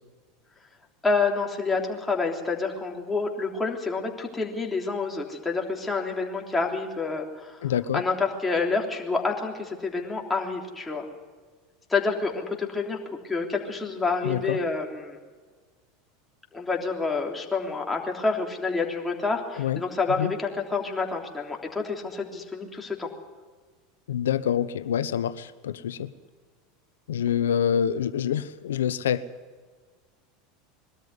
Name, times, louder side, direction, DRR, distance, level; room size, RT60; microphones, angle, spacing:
voice 1, 1.0-7.7 7.9-11.0 11.9-13.0 13.2-15.2 16.5-23.1, left 4 dB, 10° left, 0 dB, 3.4 m, -28 dB
voice 2, 7.6-8.0 14.2-14.6 19.6-19.8 20.2-20.3 24.1-26.1 27.1-29.2, left 9 dB, 85° left, 15 dB, 0.9 m, -26 dB
22.0 x 13.0 x 9.6 m, 1.5 s
hypercardioid pair, 100°, 0 cm